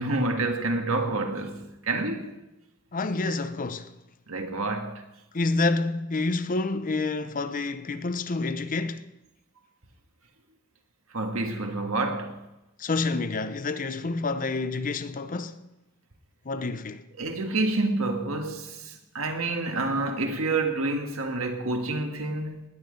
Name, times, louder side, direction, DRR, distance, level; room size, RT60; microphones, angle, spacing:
voice 1, 0.0-2.4 4.3-5.0 11.1-12.5 17.2-22.6, right 2 dB, 70° right, 1.7 m, -28 dB
voice 2, 2.9-3.9 5.3-9.1 12.8-15.6 16.4-17.1, left 3 dB, 40° left, 0.6 m, -28 dB
19.5 x 8.8 x 5.2 m
head